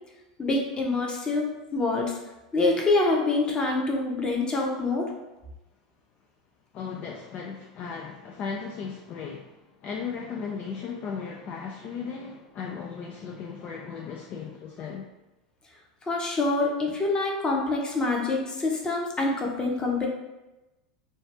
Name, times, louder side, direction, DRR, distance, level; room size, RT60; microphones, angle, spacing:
voice 1, 0.4-1.5 1.7-2.1 2.5-5.1 16.1-20.1, left 3 dB, 20° left, 0 dB, 0.8 m, -25 dB
voice 2, 6.7-15.1, left 6 dB, 40° left, 1 dB, 0.3 m, -36 dB
2.7 x 2.4 x 3.3 m, 1.0 s
hypercardioid pair, 90°, 4 cm